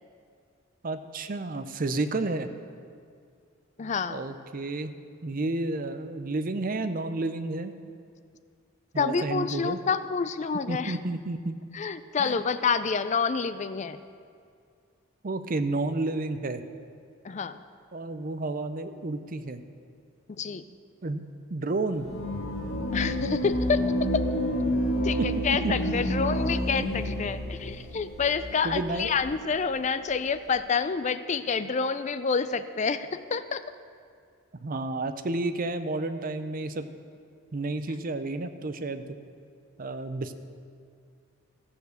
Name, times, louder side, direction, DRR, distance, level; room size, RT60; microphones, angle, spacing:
voice 1, 0.8-2.5 4.1-4.9 5.2-7.7 8.9-9.8 10.7-11.6 12.2-12.4 15.2-16.6 17.9-19.6 21.0-21.2 21.5-22.1 25.2-25.3 25.6-25.9 28.6-29.2 34.6-36.9 37.5-39.0 39.8-40.3, right 2 dB, 40° right, 10 dB, 0.5 m, -31 dB
voice 2, 3.8-4.2 9.0-11.0 11.7-14.0 17.2-17.6 20.4-20.6 22.9-23.8 25.0-25.2 25.4-33.6, left 5 dB, 35° left, 12 dB, 0.4 m, -28 dB
sound 1, 22.0-29.2, equal, 80° left, 1.5 m, -29 dB
14.0 x 6.9 x 6.5 m, 2.2 s
head